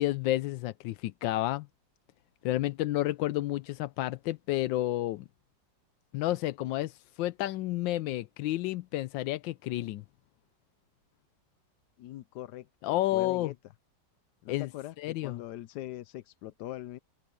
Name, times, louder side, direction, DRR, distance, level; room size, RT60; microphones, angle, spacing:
voice 1, 0.0-1.7 2.4-5.2 6.1-10.0 12.8-13.5 14.5-14.7 15.0-15.3, left 15 dB, 90° left, 1.3 m, -30 dB
voice 2, 12.0-13.5 14.4-17.0, left 14 dB, 70° left, 1.1 m, -42 dB
open air
omnidirectional pair, 2.0 m